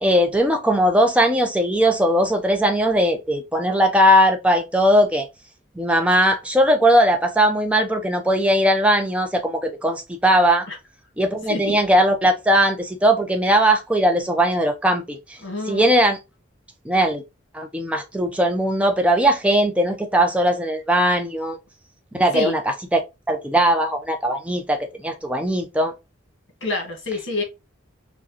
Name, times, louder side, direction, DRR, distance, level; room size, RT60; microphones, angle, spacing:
voice 1, 0.0-5.3 5.8-10.7 11.2-15.4 15.7-16.2 16.8-17.2 17.5-21.6 22.1-23.0 23.3-25.9, equal, 5° right, 0.5 m, -19 dB
voice 2, 15.4-15.9 22.3-22.6 26.6-27.4, left 3 dB, 65° left, 1.6 m, -27 dB
4.8 x 2.2 x 2.8 m
head